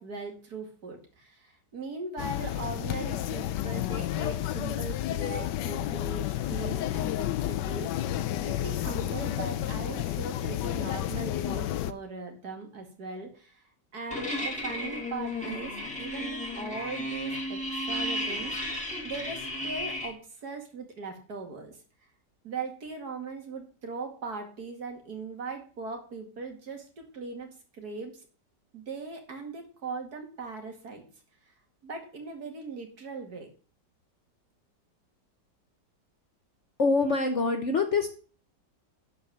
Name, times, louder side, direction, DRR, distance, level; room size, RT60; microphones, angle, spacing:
voice 1, 0.0-8.1 8.4-13.6 13.9-18.5 19.0-21.8 22.4-28.2 28.7-31.1 31.8-33.5, right 4 dB, 60° right, 3 dB, 2.6 m, -39 dB
sound 1, 2.2-11.9, left 12 dB, 80° left, 1.3 m, -31 dB
sound 2, 14.1-20.1, left 1 dB, 5° left, 2.2 m, -33 dB
voice 2, 36.8-38.1, left 3 dB, 50° left, 5 dB, 1.2 m, -25 dB
11.5 x 4.7 x 7.1 m, 0.40 s
omnidirectional pair, 1.9 m